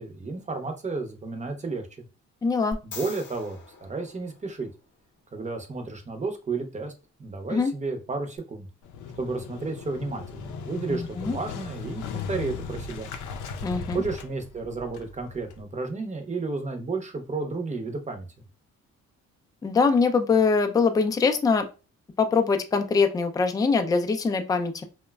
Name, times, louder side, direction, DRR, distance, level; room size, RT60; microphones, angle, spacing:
voice 1, 0.0-1.9 2.8-4.7 5.3-6.9 7.2-8.7 9.2-13.1 13.9-18.3, right 3 dB, 25° right, 5 dB, 0.6 m, -32 dB
voice 2, 2.4-2.8 7.5-7.7 10.9-11.3 13.6-14.0 19.6-21.7 22.2-24.8, left 4 dB, 15° left, 6 dB, 0.3 m, -23 dB
sound 1, 2.7-5.0 8.4-8.5, left 3 dB, 40° left, 0.7 m, -42 dB
Motorcycle, 8.8-15.6, left 5 dB, 80° left, 0.5 m, -37 dB
3.0 x 2.1 x 2.2 m, 0.31 s
cardioid pair, 90°, 30 cm